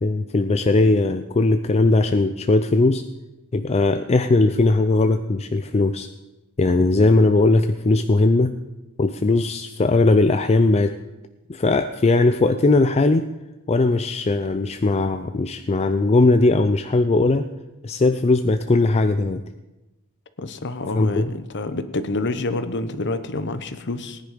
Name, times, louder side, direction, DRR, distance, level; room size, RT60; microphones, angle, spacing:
voice 1, 0.0-3.0 3.5-6.1 6.6-8.6 9.0-10.9 11.5-13.2 13.7-17.5 17.8-19.4 20.9-21.3, left 2 dB, 30° left, 8 dB, 0.4 m, -19 dB
voice 2, 20.4-24.2, left 2 dB, 50° left, 11 dB, 1.0 m, -27 dB
18.5 x 10.0 x 5.1 m, 1.0 s
head